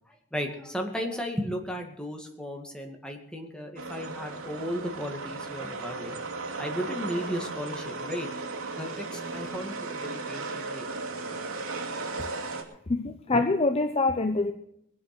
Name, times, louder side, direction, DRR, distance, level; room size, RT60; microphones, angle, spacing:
voice 1, 0.3-6.2 6.6-8.3 8.8-10.9, equal, 5° left, 2 dB, 2.2 m, -35 dB
sound 1, 3.8-12.6, right 3 dB, 80° right, 2.7 m, -36 dB
voice 2, 12.9-14.5, left 3 dB, 30° left, 8 dB, 0.7 m, -25 dB
21.5 x 8.5 x 6.1 m, 0.75 s
head